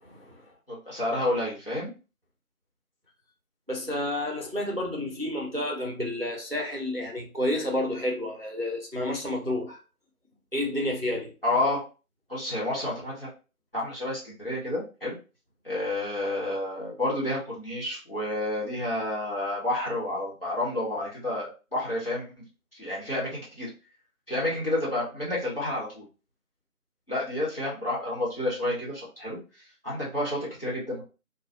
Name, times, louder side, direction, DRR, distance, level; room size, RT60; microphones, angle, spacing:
voice 1, 0.0-0.5 3.7-9.8 10.5-11.3, left 1 dB, 45° right, 0.6 m, -30 dB
voice 2, 0.7-1.9 11.4-11.8 12.3-13.3 13.7-15.2 15.6-22.4 22.7-23.7 24.3-26.0 27.1-29.4 29.8-31.0, left 1 dB, 40° left, 1.2 m, -30 dB
3.0 x 2.3 x 2.6 m
figure-of-eight pair, 175°, 44 cm